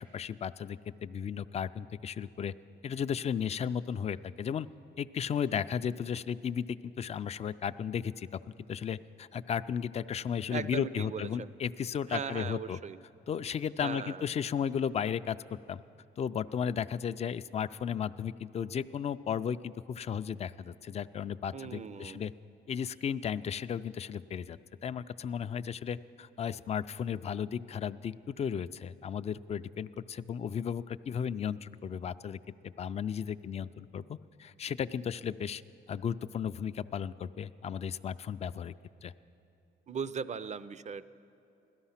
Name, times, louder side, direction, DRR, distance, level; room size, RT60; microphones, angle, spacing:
voice 1, 0.0-2.5 2.8-4.7 5.0-8.4 8.7-12.8 13.3-15.8 16.2-22.3 22.7-35.6 35.9-38.7 39.0-39.1, left 7 dB, 35° left, 13 dB, 0.3 m, -35 dB
voice 2, 10.5-11.5 12.1-13.0 13.8-14.2 21.5-22.3 39.9-41.0, right 6 dB, 35° right, 16 dB, 0.4 m, -38 dB
16.5 x 13.0 x 5.7 m, 2.8 s
cardioid pair, 90°, 20 cm